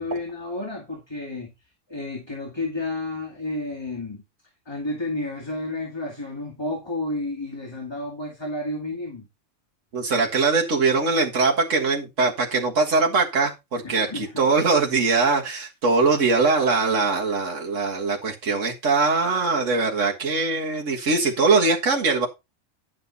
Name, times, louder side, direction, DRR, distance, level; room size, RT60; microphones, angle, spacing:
voice 1, 0.0-1.5 1.9-4.2 4.7-9.3 13.8-14.4, left 2 dB, 20° left, 2.5 m, -31 dB
voice 2, 9.9-22.3, right 4 dB, 80° right, 2.0 m, -22 dB
10.5 x 7.9 x 4.1 m
omnidirectional pair, 1.3 m